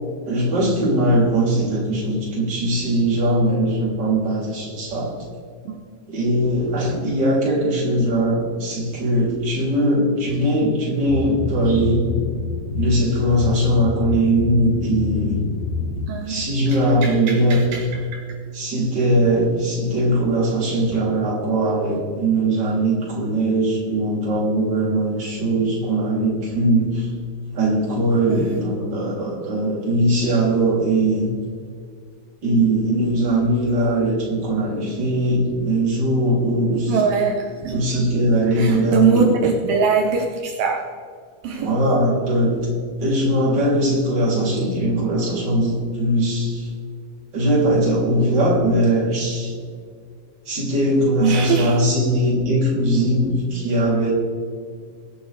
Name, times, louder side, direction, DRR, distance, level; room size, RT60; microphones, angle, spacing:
voice 1, 0.3-5.1 6.1-12.1 12.8-15.4 16.3-17.7 18.5-27.1 27.5-31.3 32.4-37.0 37.7-39.3 41.6-42.6 43.0-46.7 47.3-49.5 50.5-54.1, right 1 dB, 30° right, -4 dB, 3.4 m, -20 dB
sound 1, 11.1-16.1, left 5 dB, 65° left, 1.7 m, -27 dB
voice 2, 16.1-17.8 18.1-18.2 20.9-21.0 25.6-25.7 28.3-28.6 36.9-37.8 38.5-40.8 41.4-41.7 51.2-51.8, right 5 dB, 75° right, 2 dB, 2.6 m, -23 dB
22.5 x 8.8 x 3.3 m, 2.1 s
omnidirectional pair, 4.3 m